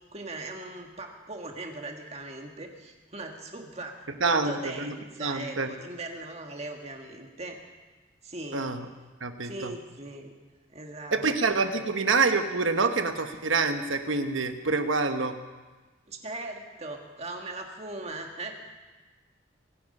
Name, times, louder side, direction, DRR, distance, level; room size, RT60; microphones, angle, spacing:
voice 1, 0.1-7.6 8.2-8.6 9.4-10.3 10.7-11.3 11.7-11.8 16.1-18.6, right 2 dB, 35° right, 3 dB, 1.7 m, -39 dB
voice 2, 4.2-4.9 5.2-5.7 8.5-8.8 9.2-9.7 11.1-15.4, right 4 dB, 85° right, 7 dB, 1.2 m, -26 dB
23.0 x 9.8 x 5.5 m, 1.3 s
head